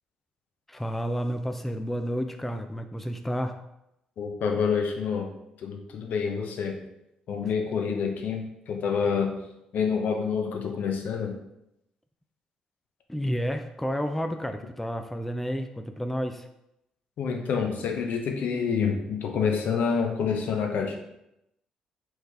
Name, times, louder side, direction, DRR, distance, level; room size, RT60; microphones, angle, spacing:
voice 1, 0.7-3.6 7.4-7.5 13.1-16.5, equal, 5° left, 6 dB, 0.4 m, -31 dB
voice 2, 4.2-5.3 5.6-6.8 7.3-9.4 9.7-11.3 17.2-21.0, left 6 dB, 60° left, 3 dB, 0.7 m, -27 dB
4.5 x 3.3 x 3.3 m, 0.86 s
figure-of-eight pair, 45°, 3 cm